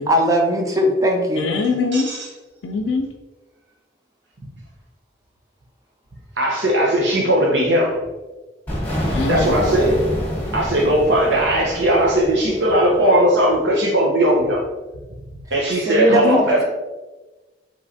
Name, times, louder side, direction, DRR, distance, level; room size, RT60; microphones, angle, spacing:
voice 1, 0.1-1.4 9.0-9.2 15.9-16.6, equal, 20° right, 2 dB, 0.4 m, -19 dB
voice 2, 1.4-2.1 2.6-3.1 9.1-9.7 16.1-16.4, left 4 dB, 85° left, 1 dB, 0.4 m, -23 dB
voice 3, 6.4-8.0 9.3-10.0 10.5-14.6 15.5-16.6, right 1 dB, 75° right, -3 dB, 0.8 m, -18 dB
sound 1, 8.7-13.3, equal, 10° left, 1.1 m, -27 dB
5.3 x 3.2 x 2.7 m, 1.2 s
head